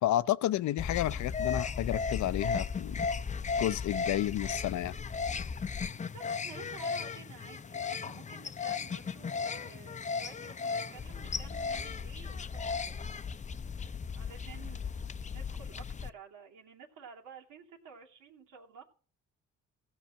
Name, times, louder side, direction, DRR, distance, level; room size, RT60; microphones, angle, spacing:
voice 1, 0.0-3.0 3.6-5.0, left 13 dB, 70° left, 0.6 m, -31 dB
sound 1, 0.8-16.1, left 5 dB, 25° left, 0.6 m, -36 dB
voice 2, 6.1-13.0 14.1-18.8, right 6 dB, 85° right, 2.7 m, -52 dB
16.0 x 5.7 x 7.3 m
cardioid pair, 90°, 30 cm